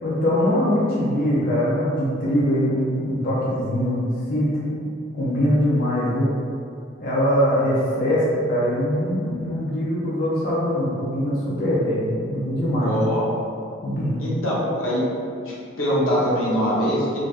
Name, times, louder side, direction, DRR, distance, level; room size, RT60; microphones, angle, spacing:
voice 1, 0.0-4.0 4.3-4.9 5.2-6.3 7.0-12.9 13.8-14.2, equal, 45° left, -7 dB, 0.5 m, -22 dB
voice 2, 12.8-13.3 14.2-15.0 15.4-17.2, equal, 85° left, -7 dB, 0.8 m, -23 dB
3.3 x 2.5 x 2.4 m, 2.4 s
head